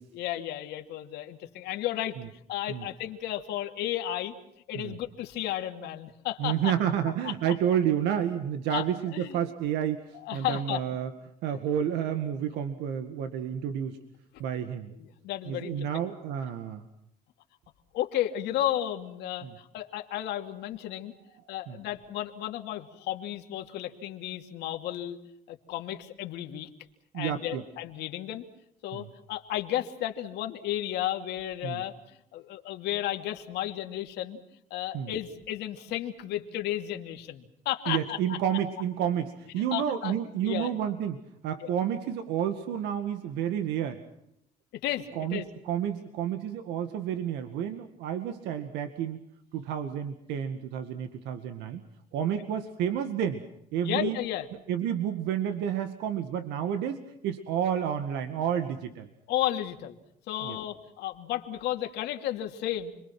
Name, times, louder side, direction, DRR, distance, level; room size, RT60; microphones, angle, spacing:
voice 1, 0.1-2.2 2.5-4.3 4.7-6.7 7.2-7.3 8.7-8.9 9.1-9.4 10.1-10.8 14.3-14.4 15.0-15.9 17.9-21.1 21.5-25.2 25.5-26.7 27.1-28.4 28.8-34.4 34.7-38.4 39.7-40.1 40.4-40.7 41.6-41.7 44.8-45.5 53.8-54.5 59.3-60.0 60.3-62.9, left 13 dB, 85° left, 4 dB, 2.7 m, -33 dB
voice 2, 6.4-11.1 11.4-14.0 14.4-14.9 15.5-16.9 19.4-19.6 21.7-21.8 27.1-27.6 28.9-29.1 31.6-31.8 34.9-35.1 37.9-44.0 45.2-49.2 49.5-51.8 52.1-53.4 53.7-54.2 54.7-59.1 60.4-60.6, right 9 dB, 90° right, 7 dB, 2.0 m, -30 dB
30.0 x 22.5 x 6.0 m, 0.77 s
cardioid pair, 110°, 17 cm